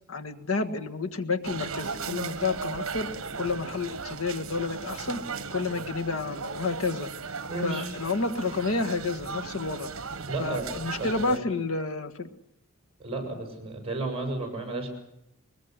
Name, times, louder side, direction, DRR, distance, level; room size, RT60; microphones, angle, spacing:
voice 1, 0.1-3.1 3.4-5.2 5.5-7.1 7.6-9.9 10.4-12.3, left 3 dB, 75° left, 6 dB, 1.6 m, -30 dB
sound 1, 1.4-11.4, right 4 dB, 70° right, 1.3 m, -37 dB
voice 2, 7.4-7.9 10.3-10.6 11.0-11.4 13.0-14.9, right 2 dB, 30° right, 3 dB, 7.1 m, -32 dB
23.0 x 21.0 x 8.1 m, 0.83 s
head